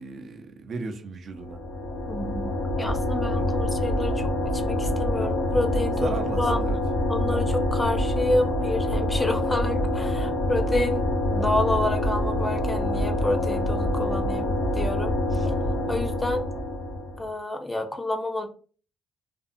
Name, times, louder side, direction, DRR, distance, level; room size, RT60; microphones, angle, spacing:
voice 1, 0.0-1.6 3.4-3.5 5.2-5.5 6.0-6.8, right 4 dB, 55° right, 0.5 m, -36 dB
sound 1, 1.4-17.3, left 1 dB, 75° left, 0.6 m, -26 dB
voice 2, 2.1-2.5 2.8-6.1 6.4-6.7 7.1-11.0 11.3-15.5 15.9-16.5 17.2-18.5, left 2 dB, 15° left, 0.5 m, -29 dB
2.6 x 2.3 x 2.6 m
cardioid pair, 90°, 0 cm